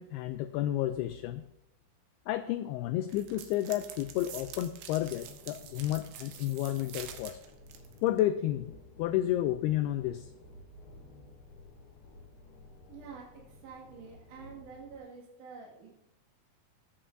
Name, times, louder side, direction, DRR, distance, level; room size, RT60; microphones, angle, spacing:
voice 1, 0.0-1.5 2.3-7.4 8.0-10.3, left 13 dB, 85° left, 10 dB, 2.3 m, -31 dB
sound 1, 3.1-8.2, right 9 dB, 75° right, 2.9 m, -47 dB
sound 2, 5.2-15.0, left 2 dB, 65° left, 3.1 m, -53 dB
voice 2, 12.9-15.9, right 5 dB, 55° right, -4 dB, 3.2 m, -48 dB
17.5 x 7.4 x 2.6 m, 0.89 s
omnidirectional pair, 4.9 m